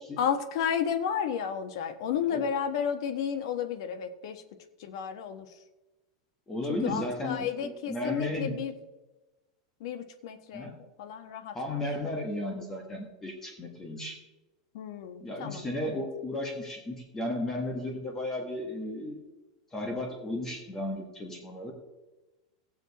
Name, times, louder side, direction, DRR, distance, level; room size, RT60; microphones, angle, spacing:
voice 1, 0.2-4.4 4.8-5.5 6.7-8.8 9.8-11.8 14.7-16.0, left 8 dB, 65° left, 8 dB, 1.2 m, -32 dB
voice 2, 6.5-8.6 10.5-10.8 11.5-14.2 15.2-19.2 19.7-21.7, left 1 dB, 15° left, 1 dB, 1.4 m, -34 dB
17.5 x 7.1 x 4.2 m, 1.1 s
supercardioid pair, 165°, 3 cm